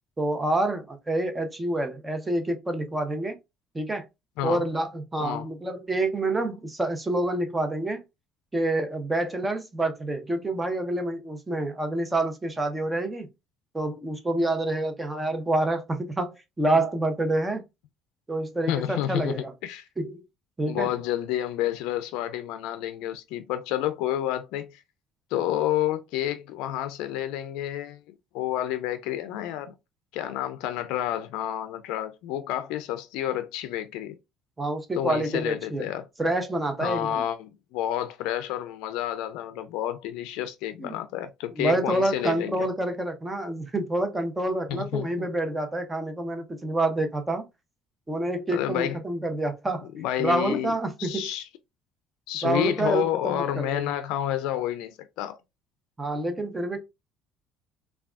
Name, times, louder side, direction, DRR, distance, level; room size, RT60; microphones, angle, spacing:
voice 1, 0.2-3.3 3.7-4.1 4.4-8.0 8.5-13.3 13.7-17.6 18.3-19.5 20.0-20.2 20.6-20.9 34.6-35.9 36.2-37.2 40.8-40.9 41.6-47.4 48.1-51.3 52.4-53.8 56.0-56.8, right 2 dB, 15° right, 0.6 m, -27 dB
voice 2, 18.7-19.9 20.7-24.8 25.3-29.7 30.1-34.2 34.9-36.1 36.8-42.6 44.7-45.3 48.5-49.0 49.9-50.7 51.0-51.5 52.3-55.4, left 12 dB, 80° left, 0.3 m, -29 dB
3.3 x 2.2 x 2.4 m
supercardioid pair, 95°, 0 cm